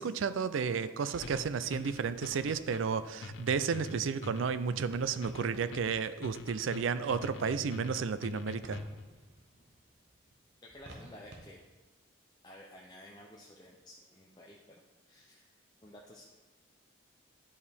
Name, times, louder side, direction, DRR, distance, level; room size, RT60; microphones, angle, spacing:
voice 1, 0.0-8.8, right 6 dB, 80° right, 13 dB, 0.4 m, -32 dB
sound 1, 0.8-11.4, right 1 dB, 55° right, 0.9 m, -56 dB
sound 2, 1.2-9.1, left 4 dB, 70° left, 0.4 m, -45 dB
voice 2, 10.6-11.6 12.4-14.8 15.1-15.5 15.8-16.3, left 1 dB, 20° left, -3 dB, 0.6 m, -53 dB
11.0 x 4.7 x 3.4 m, 1.2 s
head